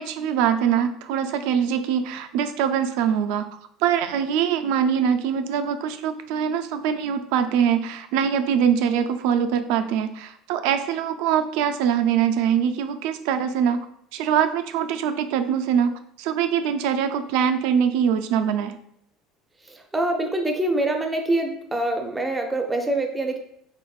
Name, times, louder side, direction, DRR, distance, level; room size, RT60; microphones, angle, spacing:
voice 1, 0.0-13.8 14.1-15.9 16.2-18.8, right 8 dB, 75° right, 8 dB, 0.3 m, -23 dB
voice 2, 19.7-23.4, right 1 dB, 10° right, 4 dB, 0.6 m, -25 dB
3.8 x 3.5 x 2.3 m, 0.71 s
supercardioid pair, 120°, 0 cm